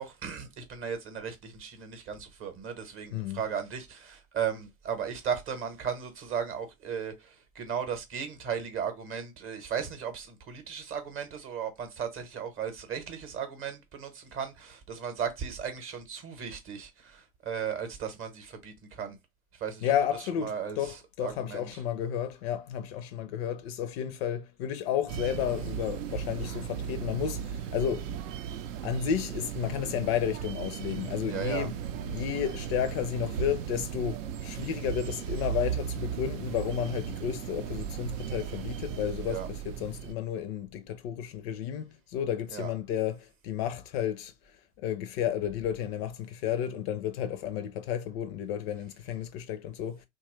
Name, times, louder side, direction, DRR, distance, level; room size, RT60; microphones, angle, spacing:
voice 1, 0.0-19.2 19.5-19.9 20.4-21.0 21.2-21.8 31.2-31.7 39.2-39.5 42.5-42.7, right 7 dB, 30° right, 0.8 m, -36 dB
voice 2, 19.8-28.1 28.8-31.7 32.1-44.3 44.8-50.1, left 9 dB, 45° left, 0.5 m, -32 dB
sound 1, 25.1-40.1, right 9 dB, 65° right, 0.5 m, -36 dB
2.9 x 2.2 x 3.0 m
figure-of-eight pair, 85°, 42 cm